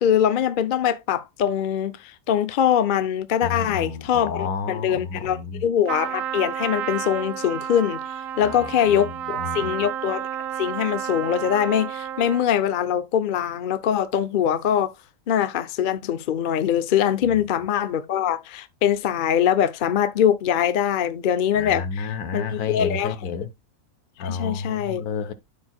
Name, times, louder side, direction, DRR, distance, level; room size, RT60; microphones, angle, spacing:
voice 1, 0.0-8.0 8.4-10.3 10.6-14.9 15.3-23.1 24.2-25.0, left 9 dB, 50° left, 0.6 m, -23 dB
voice 2, 3.4-5.7 8.4-9.7 17.3-17.6 21.5-23.5 24.2-25.3, left 5 dB, 80° left, 1.4 m, -31 dB
Trumpet, 5.9-12.6, right 10 dB, 65° right, 1.0 m, -31 dB
13.0 x 4.6 x 2.2 m
omnidirectional pair, 1.6 m